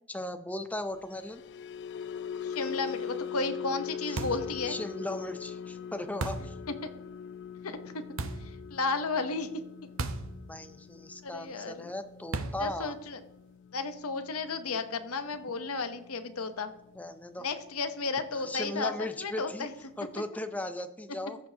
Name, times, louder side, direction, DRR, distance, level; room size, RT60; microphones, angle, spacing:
voice 1, 0.1-1.4 4.1-4.3 4.6-6.5 10.5-13.0 17.0-17.5 18.3-19.7 20.0-21.4, left 1 dB, 5° left, 8 dB, 0.6 m, -37 dB
sound 1, 1.0-17.3 17.7-18.0 18.3-18.6, left 7 dB, 55° left, 0.4 m, -42 dB
voice 2, 2.4-4.8 6.8-6.9 7.6-8.0 8.4-9.5 11.2-11.9 12.6-13.2 13.7-16.7 17.4-19.7, left 3 dB, 80° left, 9 dB, 0.9 m, -33 dB
sound 2, 4.2-4.5 6.2-6.6 8.2-8.5 10.0-10.3 10.6-10.7 12.3-12.7, right 3 dB, 65° right, 0.8 m, -34 dB
14.5 x 6.8 x 2.8 m, 0.89 s
head